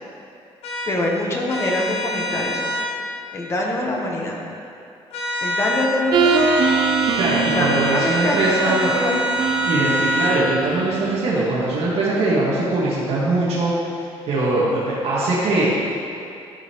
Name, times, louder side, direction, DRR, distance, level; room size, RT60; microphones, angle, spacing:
sound 1, 0.6-0.9 1.5-2.9 5.1-5.9 6.2-10.4, equal, 70° left, 1.3 m, -25 dB
voice 1, 0.8-2.6 3.3-4.4 5.4-6.5 7.5-8.4 8.6-9.3, left 1 dB, 25° left, -1 dB, 1.0 m, -24 dB
sound 2, 6.1-8.0 9.4-11.2, right 5 dB, 50° right, 0.5 m, -22 dB
voice 2, 7.1-8.9 9.6-13.7 14.3-15.7, right 2 dB, 75° right, -8 dB, 1.6 m, -21 dB
11.5 x 5.3 x 3.0 m, 2.5 s
cardioid pair, 165°, 10 cm